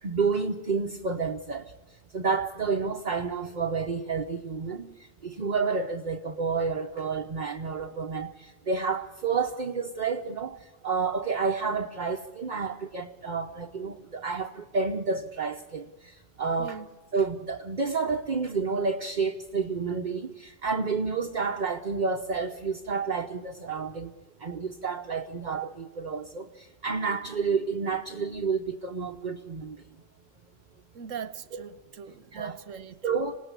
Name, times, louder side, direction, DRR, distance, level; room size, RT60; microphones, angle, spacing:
voice 1, 0.0-1.7 2.1-4.9 5.2-16.8 17.1-24.1 24.4-29.8 31.5-31.6 32.3-32.6 33.0-33.4, right 5 dB, 40° right, 1.0 m, -30 dB
voice 2, 30.9-33.0, right 7 dB, 75° right, 1.4 m, -40 dB
27.0 x 18.5 x 8.2 m
omnidirectional pair, 1.3 m